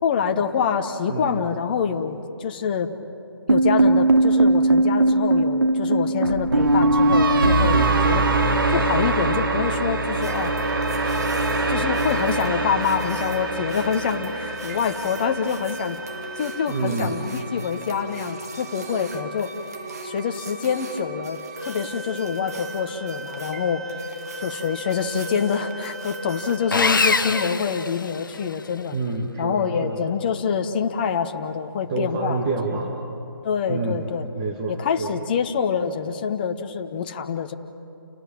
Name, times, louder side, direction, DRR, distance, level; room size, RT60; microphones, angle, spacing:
voice 1, 0.0-2.9 3.5-8.2 8.7-10.6 11.7-16.0 16.4-19.5 20.0-23.9 24.4-29.0 29.4-32.4 33.4-34.3 34.7-37.5, left 7 dB, 25° left, 6 dB, 1.0 m, -26 dB
voice 2, 1.1-1.4 7.6-7.9 16.7-17.2 28.9-30.0 31.9-33.0 33.7-34.1 34.4-35.1, right 3 dB, 20° right, 0 dB, 2.0 m, -27 dB
sound 1, 3.5-15.7, right 2 dB, 65° right, 2.4 m, -21 dB
sound 2, 10.2-27.5, right 1 dB, 45° right, 2.2 m, -36 dB
Sawing, 26.7-28.6, left 4 dB, 60° left, 1.1 m, -23 dB
30.0 x 18.5 x 8.8 m, 2.8 s
figure-of-eight pair, 150°, 12 cm